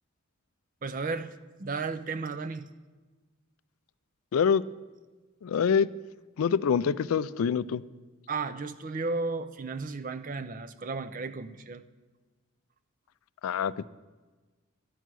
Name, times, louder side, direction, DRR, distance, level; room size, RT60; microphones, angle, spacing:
voice 1, 0.8-1.3 1.6-2.7 8.3-11.8, right 4 dB, 40° right, 13 dB, 0.5 m, -34 dB
voice 2, 4.3-4.6 5.4-5.9 6.4-7.8 13.4-13.9, left 7 dB, 75° left, 16 dB, 0.4 m, -25 dB
12.5 x 9.2 x 6.1 m, 1.3 s
head